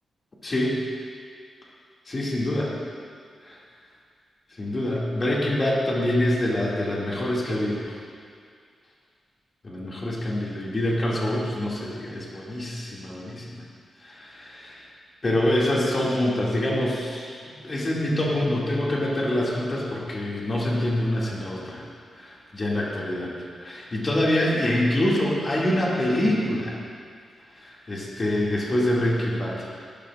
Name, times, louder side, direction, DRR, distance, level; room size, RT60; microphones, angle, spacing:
voice 1, 0.4-0.8 2.1-2.7 3.4-3.6 4.6-8.0 9.6-13.6 14.0-14.9 15.2-21.9 22.2-23.3 23.6-26.8 27.6-29.7, left 1 dB, 30° left, -5 dB, 2.4 m, -25 dB
16.5 x 12.0 x 2.5 m, 2.2 s
wide cardioid pair, 125°, 0 cm